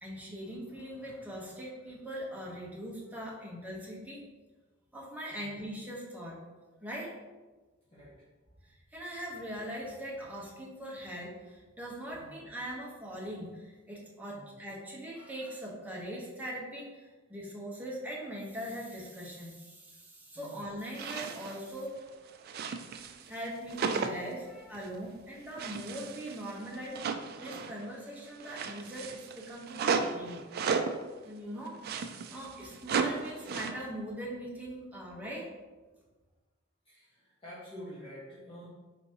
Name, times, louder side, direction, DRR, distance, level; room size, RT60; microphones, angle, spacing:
voice 1, 0.0-4.2 4.9-6.4 6.8-7.1 8.6-21.9 23.3-27.0 27.4-30.4 31.2-32.0 32.3-35.5, equal, 10° right, -4 dB, 1.0 m, -41 dB
sound 1, 20.9-21.6 22.0-23.4 23.7-24.3 24.7-25.0 25.6-27.9 28.2-31.0 31.7-33.7, right 5 dB, 50° right, 0.3 m, -35 dB
voice 2, 36.8-38.7, equal, 25° left, -10 dB, 1.1 m, -48 dB
4.6 x 3.9 x 2.8 m, 1.3 s
head